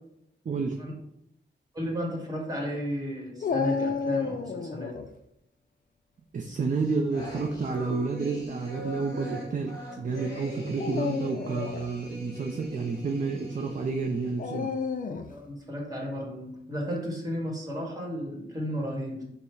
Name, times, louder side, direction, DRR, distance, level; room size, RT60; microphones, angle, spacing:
voice 1, 0.5-0.8 6.3-14.7, right 4 dB, 40° right, 3 dB, 0.4 m, -30 dB
voice 2, 1.7-4.9 15.3-19.2, equal, 20° right, -1 dB, 1.4 m, -33 dB
Dog, 3.4-5.1 7.1-7.6 8.4-8.5 10.7-11.9 14.4-15.4, left 5 dB, 45° left, 0.4 m, -31 dB
sound 1, 6.5-14.4, equal, 20° left, 1.7 m, -42 dB
5.4 x 2.1 x 4.6 m, 0.81 s
wide cardioid pair, 100°, 20 cm